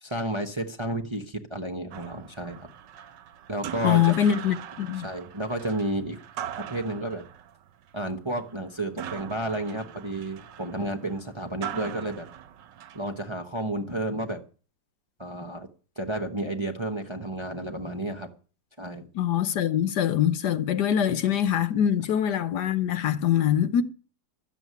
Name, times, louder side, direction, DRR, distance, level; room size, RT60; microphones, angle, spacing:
voice 1, 0.0-2.7 3.5-4.1 5.0-6.2 6.6-7.3 7.9-12.3 12.9-14.4 15.2-15.7 16.0-18.3 18.8-19.1, right 1 dB, 20° right, 0.8 m, -31 dB
sound 1, 1.9-13.3, right 10 dB, 85° right, 1.5 m, -41 dB
voice 2, 3.8-5.1 19.1-23.8, left 9 dB, 70° left, 1.4 m, -23 dB
13.0 x 7.4 x 9.4 m
omnidirectional pair, 1.9 m